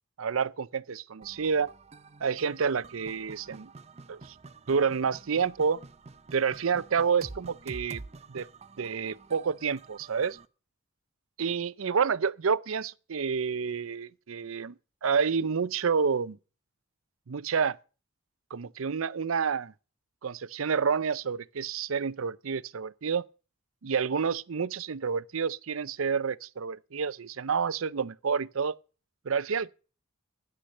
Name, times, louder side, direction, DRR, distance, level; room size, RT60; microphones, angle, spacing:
voice 1, 0.2-1.7 2.2-3.7 4.1-4.3 4.7-5.8 6.3-8.0 8.3-8.5 8.8-10.4 11.4-14.7 15.0-16.4 17.3-17.8 18.5-19.7 20.2-23.2 23.8-28.8 29.3-29.7, right 6 dB, 90° right, 0.6 m, -29 dB
sound 1, 1.2-10.5, right 3 dB, 35° right, 0.6 m, -48 dB
13.0 x 10.5 x 6.6 m
head